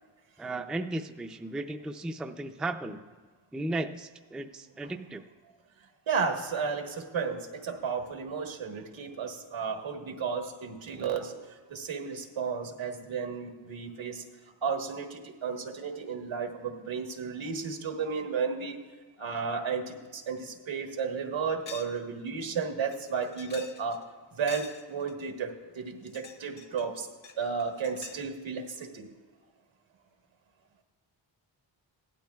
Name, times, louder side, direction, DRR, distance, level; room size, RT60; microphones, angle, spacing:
voice 1, 0.4-3.0 3.5-5.2, right 2 dB, ahead, 5 dB, 0.3 m, -35 dB
voice 2, 6.1-11.3 11.7-14.2 14.6-18.8 19.2-24.0 24.3-27.1 27.4-29.1, right 5 dB, 80° right, 4 dB, 1.3 m, -33 dB
sound 1, 20.4-20.5 20.9-21.0 21.7-22.0 22.3-22.4 22.9-24.0 24.5-25.1 25.9-26.9 27.2-28.3, left 5 dB, 65° left, 1.1 m, -47 dB
17.0 x 12.0 x 2.3 m, 1.4 s
wide cardioid pair, 120°, 46 cm